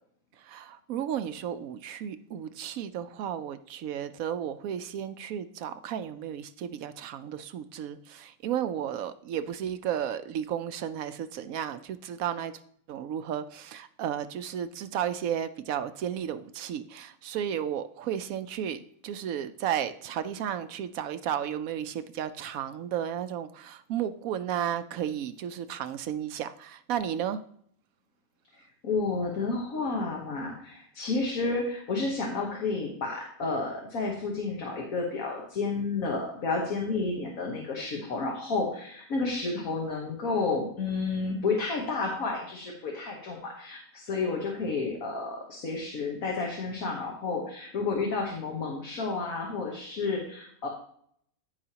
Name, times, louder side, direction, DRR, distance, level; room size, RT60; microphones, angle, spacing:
voice 1, 0.4-12.5 12.9-27.4, right 9 dB, 75° right, 12 dB, 1.0 m, -33 dB
voice 2, 28.8-50.7, left 3 dB, 70° left, 0 dB, 1.7 m, -31 dB
15.0 x 5.0 x 2.9 m, 0.64 s
omnidirectional pair, 1.5 m